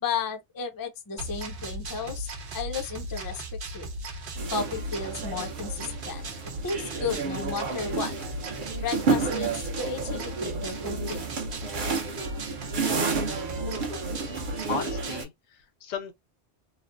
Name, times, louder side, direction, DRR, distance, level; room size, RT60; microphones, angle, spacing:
voice 1, 0.0-3.4 3.7-3.9 4.5-8.1 8.8-11.2, left 5 dB, 30° left, 0.4 m, -34 dB
sound 1, 1.2-15.2, right 1 dB, 75° right, 1.1 m, -37 dB
sound 2, 4.4-15.2, right 4 dB, 50° right, 0.8 m, -31 dB
voice 2, 14.7-16.1, left 6 dB, 80° left, 0.9 m, -35 dB
3.2 x 2.0 x 2.4 m
omnidirectional pair, 1.1 m